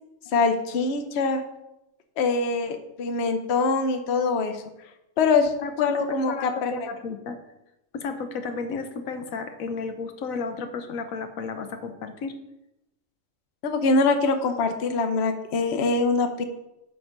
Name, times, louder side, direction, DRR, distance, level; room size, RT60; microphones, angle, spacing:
voice 1, 0.3-1.4 2.2-4.6 5.2-5.5 5.8-6.9 13.6-16.4, left 4 dB, 55° left, 7 dB, 1.0 m, -23 dB
voice 2, 5.6-7.4 7.9-12.4, left 4 dB, 80° left, 7 dB, 1.2 m, -33 dB
7.2 x 5.9 x 5.2 m, 0.90 s
omnidirectional pair, 1.4 m